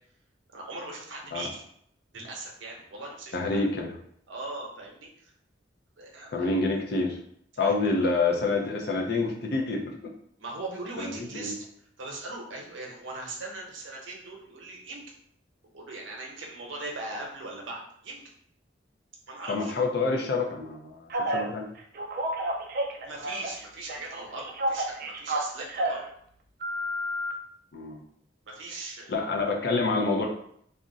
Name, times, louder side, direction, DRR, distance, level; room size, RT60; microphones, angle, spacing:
voice 1, 0.5-1.6 2.1-3.6 4.3-5.3 6.0-6.5 7.6-7.8 10.4-11.6 12.0-15.0 15.7-18.2 19.3-19.7 23.0-26.0 28.5-29.1, right 2 dB, 85° right, -1 dB, 0.8 m, -39 dB
voice 2, 3.3-3.9 6.3-7.2 7.6-9.9 11.0-11.5 19.5-21.7 27.7-28.0 29.1-30.3, left 3 dB, 60° left, 1 dB, 0.5 m, -27 dB
Telephone, 21.1-21.4 21.9-23.6 23.9-26.0 26.6-27.3, right 1 dB, 50° right, 0.4 m, -30 dB
2.4 x 2.1 x 3.8 m, 0.66 s
head